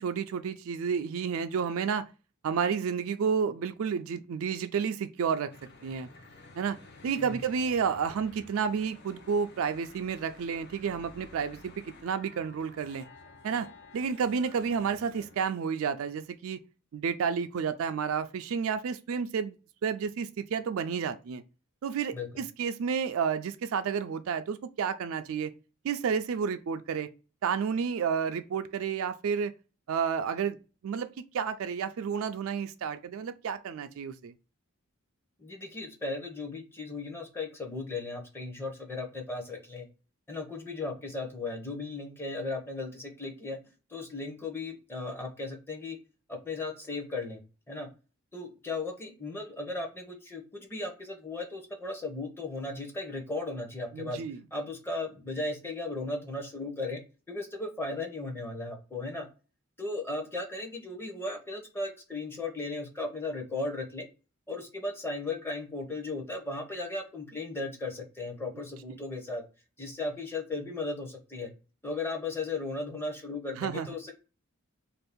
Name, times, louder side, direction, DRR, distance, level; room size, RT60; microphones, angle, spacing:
voice 1, 0.0-2.0 2.4-5.5 5.8-6.1 6.6-6.8 7.0-13.1 13.4-13.7 13.9-16.6 16.9-19.6 19.8-21.4 21.8-25.5 25.8-27.1 27.4-29.5 29.9-34.3 53.9-54.4 73.6-73.9, right 6 dB, 70° right, 0.3 m, -31 dB
Church bell / Traffic noise roadway noise, 5.5-15.5, left 3 dB, 50° left, 0.6 m, -52 dB
voice 2, 35.4-39.9 40.3-43.6 43.9-46.0 46.3-47.9 48.3-54.2 54.5-57.0 57.3-59.3 59.8-64.0 64.5-69.4 69.8-71.5 71.8-74.1, left 2 dB, 10° left, 0.7 m, -36 dB
2.6 x 2.3 x 3.5 m
head